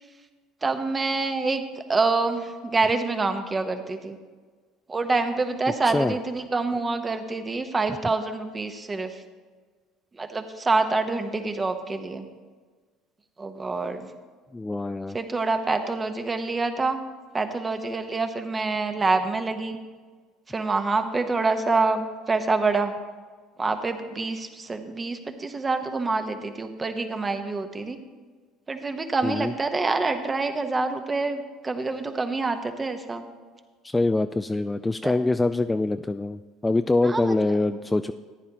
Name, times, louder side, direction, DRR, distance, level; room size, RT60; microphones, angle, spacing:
voice 1, 0.6-4.2 4.9-9.2 10.1-12.3 13.4-14.1 15.1-17.0 17.3-19.8 20.5-23.0 23.6-28.0 28.7-33.2 35.0-35.1 37.0-37.3, right 3 dB, 25° right, 7 dB, 1.1 m, -26 dB
voice 2, 5.8-6.2 14.5-15.2 29.2-29.5 33.8-38.1, left 2 dB, 15° left, 10 dB, 0.3 m, -24 dB
14.5 x 9.9 x 3.0 m, 1.5 s
hypercardioid pair, 65°, 0 cm